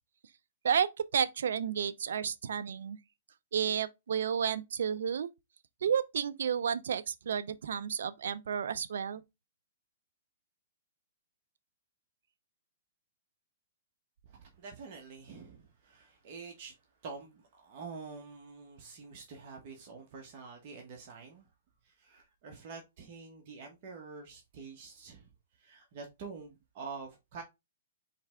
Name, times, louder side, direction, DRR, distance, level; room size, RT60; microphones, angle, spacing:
voice 1, 0.6-3.0 3.5-5.3 5.8-9.2, right 7 dB, 75° right, 0.4 m, -31 dB
voice 2, 14.2-16.7 17.0-21.5 21.8-25.3 25.6-27.4, right 4 dB, 50° right, 1.2 m, -47 dB
4.5 x 3.3 x 3.6 m
hypercardioid pair, 135°, 0 cm